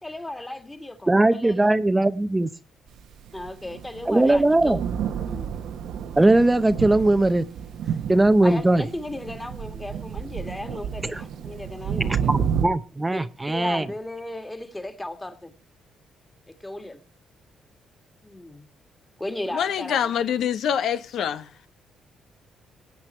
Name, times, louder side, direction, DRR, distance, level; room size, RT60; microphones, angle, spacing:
voice 1, 0.0-1.6 3.3-4.8 5.3-5.5 7.8-8.0 8.4-12.3 13.1-15.6 16.6-17.0 18.2-18.7 19.2-20.1, left 1 dB, 15° left, 2.0 m, -35 dB
voice 2, 1.1-2.5 4.1-4.8 6.2-7.4 8.1-8.8 11.1-11.2 12.3-13.9, right 2 dB, 15° right, 0.7 m, -19 dB
Thunder, 3.1-12.7, right 8 dB, 80° right, 1.2 m, -31 dB
voice 3, 19.5-21.5, left 8 dB, 75° left, 0.9 m, -25 dB
18.5 x 8.6 x 4.4 m
cardioid pair, 90°, 0 cm